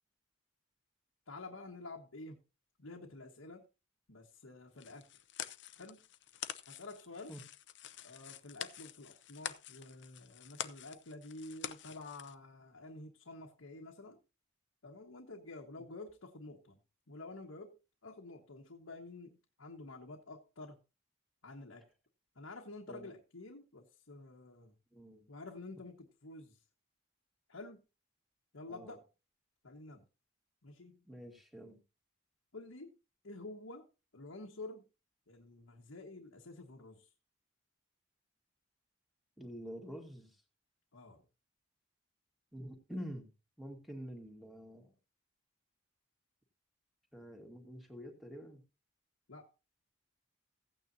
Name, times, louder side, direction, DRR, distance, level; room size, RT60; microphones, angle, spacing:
voice 1, 1.3-2.4 2.8-3.7 4.1-5.2 5.8-6.0 6.7-7.3 8.0-14.2 14.8-16.8 17.1-17.8 18.0-20.8 21.4-21.9 22.3-24.7 25.3-26.7 27.5-27.8 28.5-29.1 29.6-30.1 30.6-31.0 32.5-33.0 33.2-33.9 34.1-34.8 35.3-37.1 40.9-41.3 49.3-49.5, left 2 dB, 85° left, 1.4 m, -49 dB
sound 1, 4.8-12.3, left 9 dB, 60° left, 0.7 m, -47 dB
voice 2, 24.9-25.3 28.7-28.9 31.1-31.8 39.4-40.4 42.5-43.3 43.6-44.9 47.1-48.6, equal, ahead, 2.0 m, -47 dB
16.0 x 9.1 x 2.7 m
head